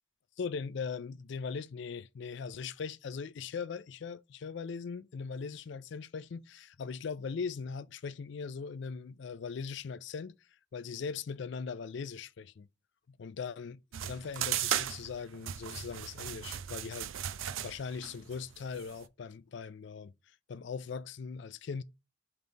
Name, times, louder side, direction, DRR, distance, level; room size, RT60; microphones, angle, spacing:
voice 1, 0.4-10.3 10.7-12.7 13.1-17.1 17.4-20.1 20.5-21.8, left 5 dB, 60° left, 0.4 m, -40 dB
sound 1, 13.9-19.0, right 11 dB, 80° right, 0.5 m, -37 dB
5.4 x 3.9 x 4.5 m
head